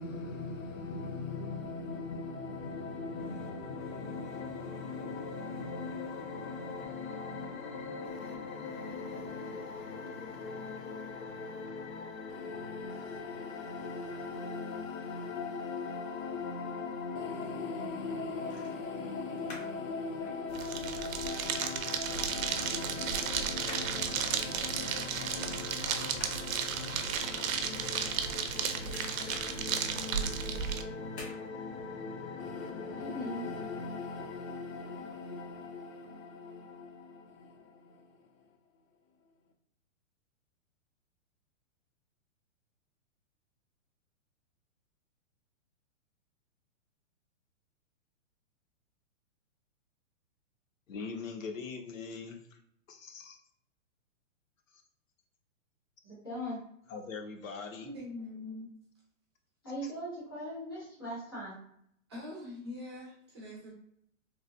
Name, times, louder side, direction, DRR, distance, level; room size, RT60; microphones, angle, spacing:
voice 1, 0.0-38.6 39.2-39.3 50.9-52.6 52.9-53.4 54.7-54.8 56.9-57.9 59.8-59.9, left 4 dB, 80° left, 5 dB, 0.7 m, -40 dB
sound 1, 17.3-17.6 18.5-19.8 20.1-22.0 22.3-22.5 22.9-28.5 28.8-30.5 31.1-31.4 31.8-31.9, left 2 dB, 55° left, 0.8 m, -49 dB
sound 2, 20.5-30.8, right 7 dB, 85° right, 0.5 m, -34 dB
voice 2, 32.8-33.5 56.0-56.6 59.6-61.6, equal, 20° left, -9 dB, 0.4 m, -40 dB
voice 3, 57.8-58.7 62.1-63.7, left 2 dB, 20° right, -5 dB, 0.6 m, -43 dB
3.1 x 2.2 x 2.5 m, 0.69 s
hypercardioid pair, 180°, 39 cm